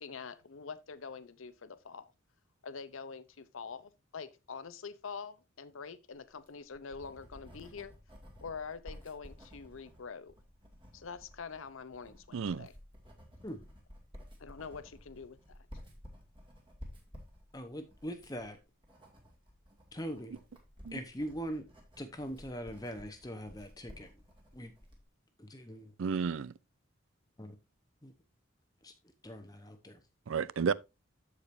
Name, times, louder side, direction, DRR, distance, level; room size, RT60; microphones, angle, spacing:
voice 1, 0.0-2.1 2.6-7.9 8.4-10.3 10.9-12.7 14.4-15.6, left 5 dB, 80° left, 0.7 m, -45 dB
Writing, 6.3-25.1, equal, 25° right, 2.2 m, -54 dB
voice 2, 12.3-12.7 20.8-21.0 26.0-26.5 30.3-30.7, right 6 dB, 75° right, 0.4 m, -32 dB
voice 3, 17.5-18.6 19.9-20.4 20.9-21.7 22.0-24.2 24.5-24.7 25.4-25.9 27.4-27.6 28.0-28.1 28.8-28.9 29.2-30.0, equal, 20° left, 0.9 m, -42 dB
14.0 x 4.9 x 2.6 m
head